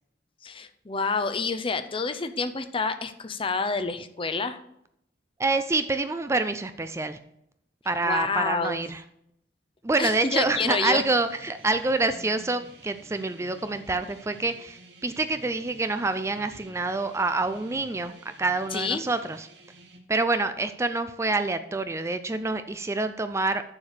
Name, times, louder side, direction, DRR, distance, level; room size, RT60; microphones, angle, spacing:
voice 1, 0.4-4.6 8.0-8.8 10.0-11.0 18.7-19.0, left 4 dB, 30° left, 10 dB, 0.6 m, -28 dB
voice 2, 5.4-7.2 7.9-9.0 9.8-19.5 20.1-23.8, right 3 dB, 15° right, 10 dB, 0.4 m, -27 dB
sound 1, 10.2-20.0, right 2 dB, 65° right, 1.7 m, -51 dB
7.1 x 6.8 x 6.5 m, 0.76 s
head